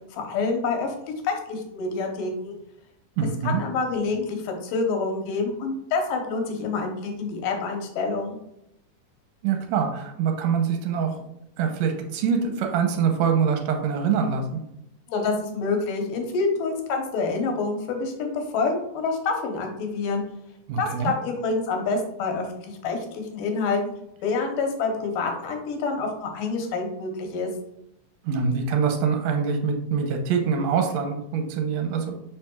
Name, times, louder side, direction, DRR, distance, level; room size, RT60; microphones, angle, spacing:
voice 1, 0.1-2.6 3.4-8.4 15.1-20.2 20.8-23.8 24.2-27.5, left 4 dB, 85° left, 3 dB, 2.7 m, -27 dB
voice 2, 3.2-3.6 9.4-11.2 11.6-14.6 20.7-21.1 28.2-32.2, right 6 dB, 70° right, 4 dB, 1.8 m, -24 dB
6.6 x 5.9 x 2.4 m, 0.79 s
omnidirectional pair, 3.7 m